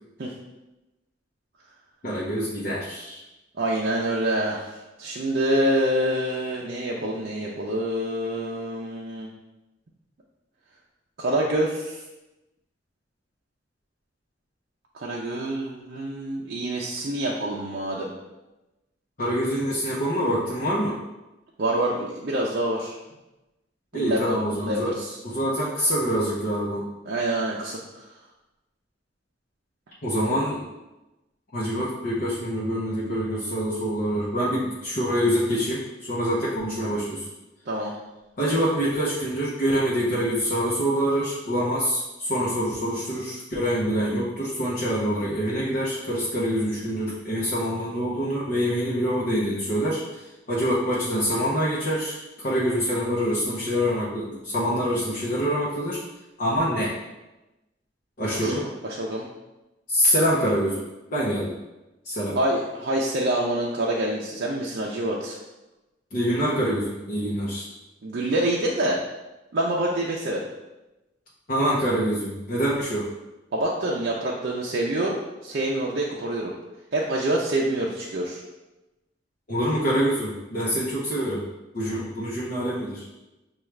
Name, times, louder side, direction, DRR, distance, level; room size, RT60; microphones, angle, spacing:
voice 1, 2.0-3.2 19.2-20.9 23.9-24.9 25.2-26.8 30.0-30.6 31.5-37.2 38.4-50.2 50.5-56.0 56.4-56.9 58.2-58.7 59.9-60.8 61.1-61.5 62.0-62.4 66.1-67.7 71.5-73.0 79.5-81.4 81.7-83.0, equal, 45° left, -7 dB, 0.7 m, -25 dB
voice 2, 3.6-4.7 5.0-9.3 11.2-12.0 15.0-18.1 21.6-23.0 23.9-25.2 27.1-28.0 37.7-37.9 58.3-58.5 58.8-59.3 62.3-65.4 68.0-69.0 69.5-70.4 73.5-76.5 76.9-78.4, right 1 dB, 55° right, -4 dB, 0.5 m, -26 dB
5.8 x 2.3 x 3.2 m, 1.0 s
head